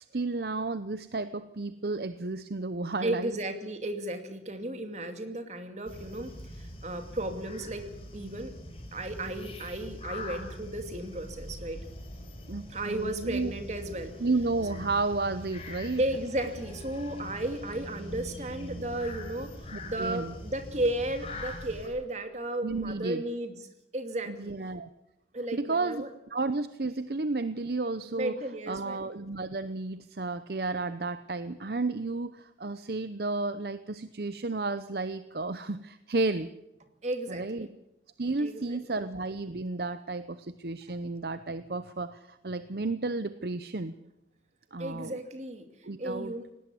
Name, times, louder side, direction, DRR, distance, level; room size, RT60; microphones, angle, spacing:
voice 1, 0.1-3.3 12.5-13.5 14.2-16.0 19.7-20.3 22.6-23.2 24.3-24.9 25.5-28.3 28.7-36.5 37.3-37.7 38.2-43.9 44.7-45.2 45.8-46.3, right 3 dB, 60° right, 12 dB, 0.7 m, -32 dB
voice 2, 3.0-6.3 6.6-7.8 8.1-8.5 8.9-11.8 12.7-14.1 16.0-19.5 19.8-23.6 23.9-24.5 25.3-26.1 28.1-29.0 37.0-37.8 38.4-39.0 44.8-45.7 46.0-46.4, right 1 dB, 40° right, 7 dB, 2.5 m, -34 dB
sound 1, 5.9-21.9, left 1 dB, 30° left, 4.5 m, -43 dB
19.0 x 17.5 x 8.4 m, 0.87 s
head